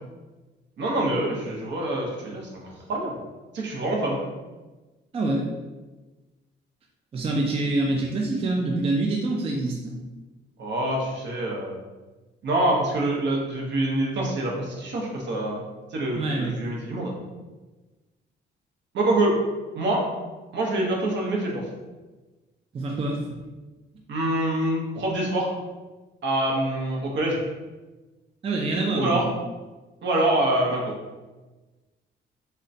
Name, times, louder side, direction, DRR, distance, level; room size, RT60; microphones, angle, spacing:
voice 1, 0.8-3.1 3.5-4.2 10.6-11.7 12.4-15.6 15.9-17.1 18.9-19.4 19.7-20.0 20.5-21.6 24.1-25.5 26.2-27.4 28.9-29.2 30.0-30.9, right 1 dB, 65° right, -2 dB, 0.8 m, -25 dB
voice 2, 5.1-5.5 7.1-10.0 16.1-16.6 22.7-23.3 28.4-29.3, right 2 dB, 30° right, 0 dB, 0.4 m, -26 dB
3.7 x 2.1 x 2.6 m, 1.2 s
cardioid pair, 90°, 20 cm